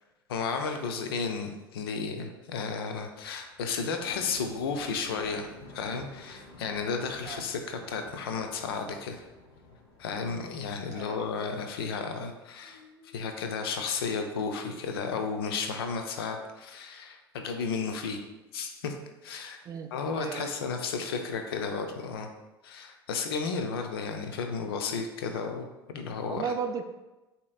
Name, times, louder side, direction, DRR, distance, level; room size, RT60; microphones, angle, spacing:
voice 1, 0.3-9.2 10.0-12.8 13.1-18.2 18.5-18.9 19.2-19.6 19.9-22.3 22.6-26.5, left 5 dB, 65° left, 5 dB, 0.6 m, -33 dB
sound 1, 2.4-12.4 12.6-13.5, left 2 dB, 50° left, 1.0 m, -53 dB
voice 2, 10.9-11.2 19.7-19.9 20.2-20.5 26.3-26.8, right 6 dB, 25° right, 7 dB, 0.4 m, -34 dB
6.8 x 2.9 x 2.4 m, 1.1 s
figure-of-eight pair, 75°, 13 cm